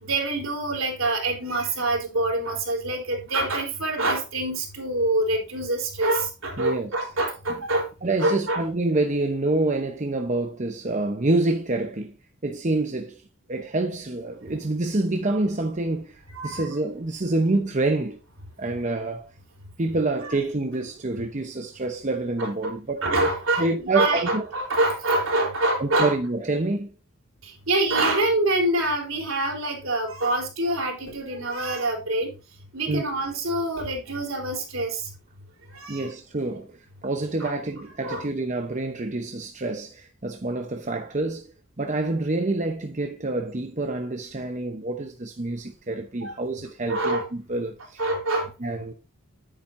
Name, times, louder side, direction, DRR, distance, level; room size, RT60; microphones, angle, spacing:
voice 1, 0.0-7.9 8.2-8.6 16.4-16.7 20.2-20.3 22.4-22.7 23.0-26.1 27.4-32.3 32.7-35.1 35.7-36.1 37.4-37.5 38.0-38.2 46.2-46.3 46.9-47.3 48.0-48.5, right 2 dB, 65° right, 3.7 m, -25 dB
voice 2, 6.6-6.9 8.0-12.2 12.4-13.2 13.5-18.2 18.6-19.3 19.8-23.1 23.6-24.4 25.8-26.9 32.9-33.0 35.9-41.5 41.8-48.0 48.6-48.9, right 2 dB, 35° right, 0.8 m, -27 dB
10.0 x 9.0 x 2.6 m
head